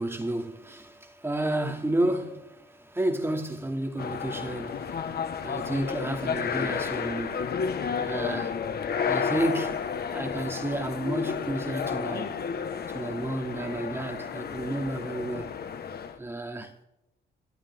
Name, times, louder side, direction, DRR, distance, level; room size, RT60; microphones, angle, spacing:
voice 1, 0.0-7.5 7.9-8.6 9.1-12.4 12.9-15.6 16.2-16.8, right 1 dB, 10° right, 2.7 m, -31 dB
sound 1, 4.0-16.2, left 6 dB, 55° left, 1.7 m, -32 dB
29.0 x 12.5 x 3.8 m
cardioid pair, 90°, 20 cm